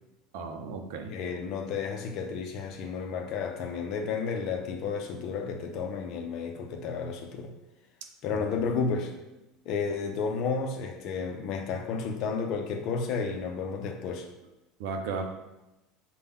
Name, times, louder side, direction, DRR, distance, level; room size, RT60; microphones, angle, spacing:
voice 1, 0.3-1.1 14.8-15.2, right 4 dB, 80° right, 4 dB, 0.6 m, -34 dB
voice 2, 1.1-7.5 8.2-9.2 9.6-14.3, left 5 dB, 50° left, 4 dB, 0.6 m, -32 dB
5.6 x 2.3 x 3.6 m, 0.97 s
cardioid pair, 150°, 0 cm